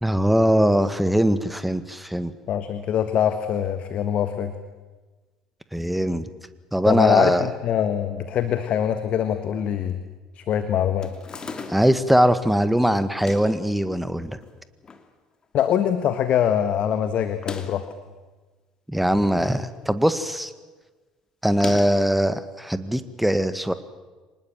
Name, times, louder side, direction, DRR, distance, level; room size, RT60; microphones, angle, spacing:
voice 1, 0.0-2.3 5.7-6.2 6.7-7.5 11.7-14.4 18.9-20.5 21.4-23.7, equal, 5° right, 12 dB, 1.8 m, -21 dB
voice 2, 2.5-4.5 6.9-10.0 10.3-11.1 15.5-17.8, left 9 dB, 50° left, 10 dB, 1.5 m, -23 dB
sound 1, 11.0-12.0 13.1-13.6 14.4-15.1 15.4-15.5 15.7-15.8 17.3-17.9 18.9-19.7 20.0-20.3 21.5-22.1, left 4 dB, 30° left, 2.7 m, -38 dB
25.5 x 20.0 x 7.6 m, 1.3 s
hypercardioid pair, 60°, 3 cm